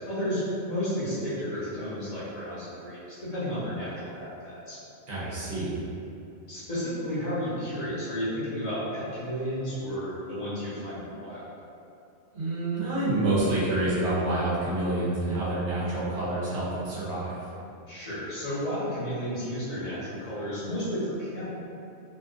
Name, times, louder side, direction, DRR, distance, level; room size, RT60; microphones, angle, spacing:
voice 1, 0.1-4.8 6.5-11.4 17.9-21.5, equal, 35° left, -11 dB, 1.0 m, -32 dB
voice 2, 5.1-5.8 12.3-17.3, right 2 dB, 65° right, -9 dB, 1.1 m, -27 dB
2.9 x 2.4 x 2.4 m, 2.6 s
omnidirectional pair, 1.3 m